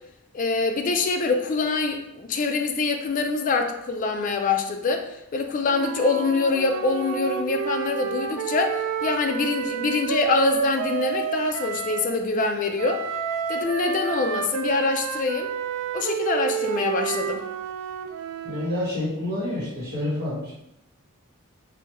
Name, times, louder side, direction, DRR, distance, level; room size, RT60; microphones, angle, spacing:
voice 1, 0.3-13.0 13.5-15.5 15.9-17.4, left 3 dB, 40° left, 5 dB, 0.3 m, -25 dB
Wind instrument woodwind instrument, 5.7-12.1 12.8-18.8, right 7 dB, 85° right, 0.3 m, -30 dB
voice 2, 18.4-20.5, left 1 dB, 45° right, -9 dB, 1.0 m, -28 dB
3.3 x 2.2 x 2.9 m, 0.84 s
head